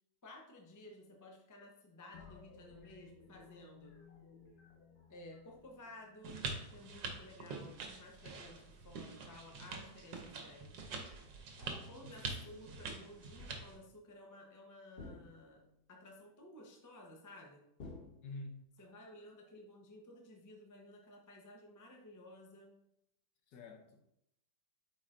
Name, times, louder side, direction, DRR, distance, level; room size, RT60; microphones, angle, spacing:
voice 1, 0.2-3.9 5.1-6.5 6.7-10.9 11.6-17.6 18.8-22.8, left 1 dB, 25° left, 1 dB, 0.4 m, -55 dB
sound 1, 2.1-6.8, left 6 dB, 85° left, 1.7 m, -59 dB
sound 2, 6.2-13.8, right 4 dB, 75° right, 1.5 m, -45 dB
voice 2, 11.6-12.6 18.2-18.6 23.5-24.0, left 2 dB, 65° left, 5 dB, 1.2 m, -50 dB
sound 3, 13.4-13.9 15.0-15.7 17.8-18.7, left 3 dB, 50° left, 0.8 m, -52 dB
8.3 x 4.7 x 2.5 m, 0.80 s
omnidirectional pair, 2.0 m